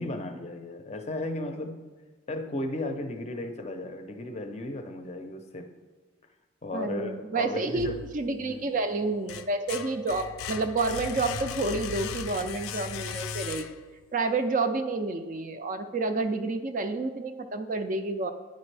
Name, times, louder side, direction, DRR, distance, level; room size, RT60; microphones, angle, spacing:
voice 1, 0.0-1.8 2.3-5.7 6.6-8.0 8.4-8.7, left 1 dB, 30° left, 6 dB, 0.5 m, -35 dB
voice 2, 6.7-7.9 8.1-13.7 14.1-18.3, right 3 dB, 40° right, 7 dB, 0.4 m, -29 dB
sound 1, 7.7-8.6 9.0-14.0, left 7 dB, 85° left, 0.4 m, -37 dB
9.3 x 5.1 x 3.3 m, 1.3 s
head